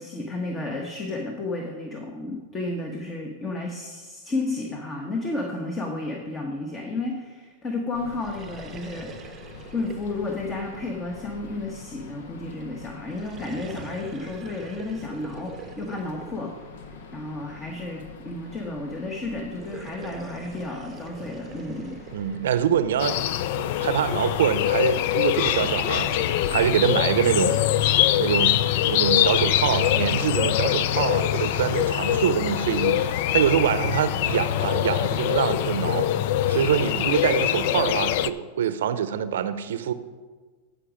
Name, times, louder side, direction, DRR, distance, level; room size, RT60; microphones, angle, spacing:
voice 1, 0.0-9.3 9.7-16.5 17.1-22.0, left 2 dB, 20° left, 1 dB, 1.2 m, -32 dB
sound 1, 7.9-27.2, left 5 dB, 75° left, 0.9 m, -44 dB
sound 2, 8.1-11.7 13.0-17.3 19.5-23.5 24.8-27.1, right 6 dB, 25° right, 0.7 m, -44 dB
voice 2, 22.1-23.2 23.6-26.1 26.5-27.6 28.2-36.1 36.5-39.9, right 9 dB, 80° right, 12 dB, 0.6 m, -25 dB
sound 3, 23.0-38.3, left 12 dB, 60° left, 0.4 m, -23 dB
13.5 x 5.1 x 5.1 m, 1.4 s
hypercardioid pair, 125°, 0 cm